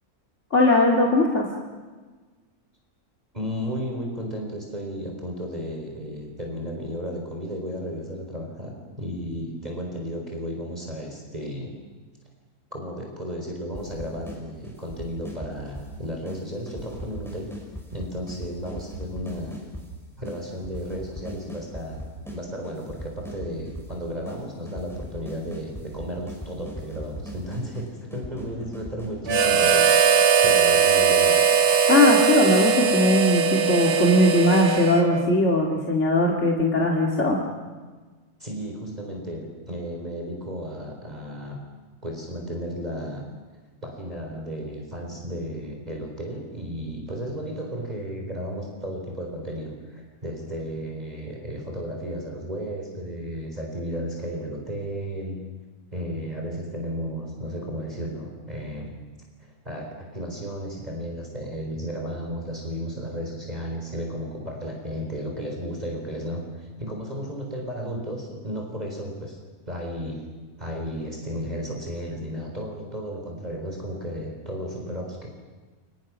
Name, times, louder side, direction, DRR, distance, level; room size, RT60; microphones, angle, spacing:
voice 1, 0.5-1.5 31.9-37.4, left 1 dB, 50° left, -1 dB, 2.5 m, -19 dB
voice 2, 3.3-11.8 12.7-17.5 17.9-19.6 20.2-22.0 22.3-29.9 30.4-31.4 38.4-41.6 42.0-43.2 43.8-55.4 55.9-58.9 59.4-69.4 69.7-70.3 70.6-75.3, equal, 25° right, 0 dB, 4.3 m, -33 dB
sound 1, 13.7-14.4 14.6-15.9 16.2-16.4 16.7-19.9 20.2-20.4 20.6-22.4 22.6-23.9 24.2-24.4 24.7-29.7, equal, ahead, 5.9 m, -38 dB
Harmonica, 29.3-35.3, right 6 dB, 80° right, 1.8 m, -20 dB
29.5 x 25.5 x 6.2 m, 1.4 s
omnidirectional pair, 1.6 m